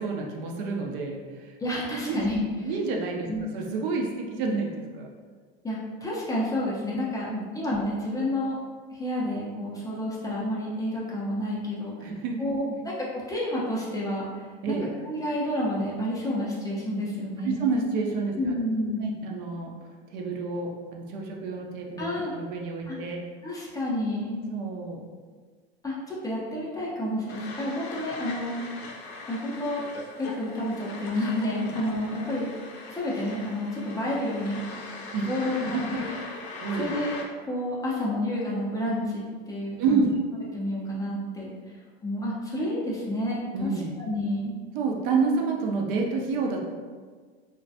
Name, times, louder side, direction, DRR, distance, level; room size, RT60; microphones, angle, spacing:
voice 1, 0.0-1.6 1.9-2.2 2.6-3.3 3.5-5.1 7.3-7.5 12.0-12.4 14.6-14.9 17.4-18.4 19.0-19.7 20.1-22.1 22.3-23.2 24.5-25.0 35.1-36.1 36.6-36.8 39.8-40.2 43.5-43.9 44.7-46.6, right 4 dB, 55° right, 0 dB, 0.5 m, -29 dB
voice 2, 1.6-2.4 2.7-2.8 3.3-3.5 5.6-7.3 7.5-8.6 8.9-12.1 12.4-14.8 15.0-17.7 18.4-19.1 22.0-22.3 22.9-23.0 23.4-24.4 25.8-28.5 29.3-29.8 30.2-32.5 32.9-34.6 35.2-35.6 36.0-36.2 36.8-37.1 37.5-40.0 40.5-41.5 42.0-43.7 44.0-44.5, left 1 dB, 10° left, -6 dB, 0.4 m, -30 dB
sound 1, 27.3-37.2, left 3 dB, 75° left, 0.6 m, -40 dB
2.2 x 2.1 x 2.6 m, 1.5 s
hypercardioid pair, 100°, 32 cm